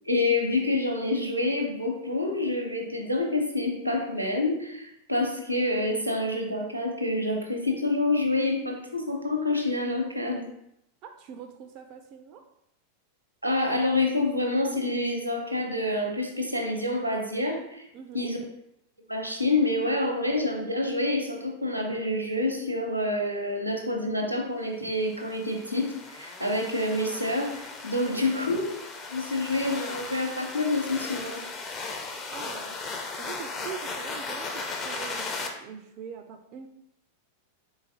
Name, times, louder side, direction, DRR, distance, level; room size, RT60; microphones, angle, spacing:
voice 1, 0.0-10.4 13.4-17.9 18.1-18.4 19.1-28.7 29.1-31.4, left 2 dB, 90° right, 2 dB, 0.7 m, -27 dB
voice 2, 11.0-12.4 17.9-18.3 27.9-28.2 32.3-32.7 33.2-36.7, right 7 dB, 40° right, 6 dB, 0.3 m, -43 dB
sound 1, 25.0-35.5, left 3 dB, 25° left, 0.5 m, -37 dB
3.9 x 3.8 x 2.7 m, 0.78 s
figure-of-eight pair, 90°, 0 cm